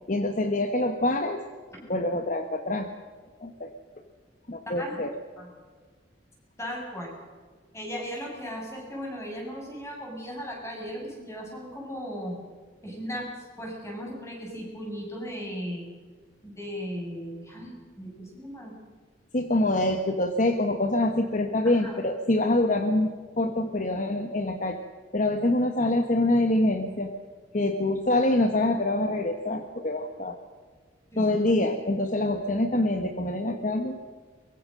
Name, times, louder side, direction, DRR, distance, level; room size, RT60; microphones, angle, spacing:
voice 1, 0.1-1.4 1.9-2.9 3.4-3.7 4.5-5.1 19.3-24.8 25.1-27.1 27.5-30.4 31.2-34.0, left 1 dB, 45° left, 6 dB, 1.3 m, -25 dB
voice 2, 4.7-5.0 5.4-5.5 6.6-7.1 7.7-12.4 12.8-13.3 13.6-15.8 16.4-18.7 21.6-22.0 31.1-31.2, equal, 15° left, -1 dB, 7.2 m, -37 dB
23.5 x 22.0 x 6.5 m, 1.5 s
head